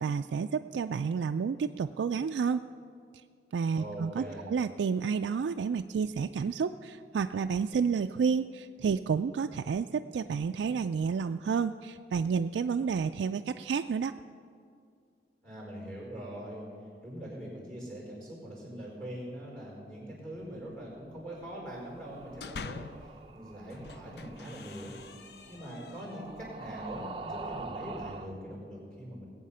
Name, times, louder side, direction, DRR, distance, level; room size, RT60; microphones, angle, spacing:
voice 1, 0.0-2.6 3.5-14.1, right 6 dB, 85° right, 7 dB, 0.3 m, -30 dB
voice 2, 3.7-4.5 15.4-16.6 17.0-24.9 25.5-29.3, equal, 5° left, -4 dB, 4.5 m, -42 dB
sound 1, 21.6-28.3, right 3 dB, 30° right, 0.7 m, -45 dB
sound 2, 22.0-23.1 23.6-26.5, left 5 dB, 65° left, 0.5 m, -46 dB
20.0 x 8.6 x 5.6 m, 2.4 s
head